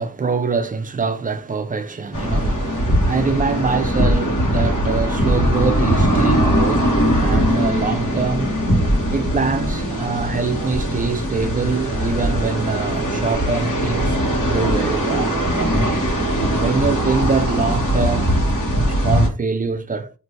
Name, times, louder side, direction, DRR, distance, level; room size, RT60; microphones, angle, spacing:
voice 1, 0.0-8.5 9.1-18.4 18.9-20.1, right 4 dB, 25° right, 0.4 m, -24 dB
sound 1, 2.1-19.3, equal, 70° left, 1.3 m, -20 dB
2.6 x 2.6 x 3.2 m
wide cardioid pair, 130°, 32 cm